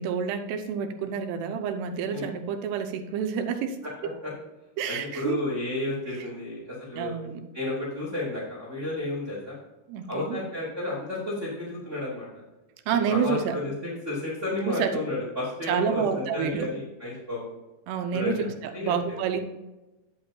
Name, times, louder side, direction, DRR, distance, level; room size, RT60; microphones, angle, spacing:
voice 1, 0.0-4.1 4.8-5.4 6.1-6.3 7.0-7.4 9.9-10.4 12.9-13.6 14.7-15.0 15.7-16.7 17.9-19.4, right 7 dB, 80° right, 5 dB, 2.7 m, -29 dB
voice 2, 4.9-7.1 7.5-9.6 10.1-12.4 12.9-13.7 14.0-17.5 18.1-18.4 18.7-19.2, left 2 dB, 25° right, -7 dB, 1.7 m, -32 dB
10.0 x 8.6 x 2.8 m, 1.0 s
omnidirectional pair, 5.1 m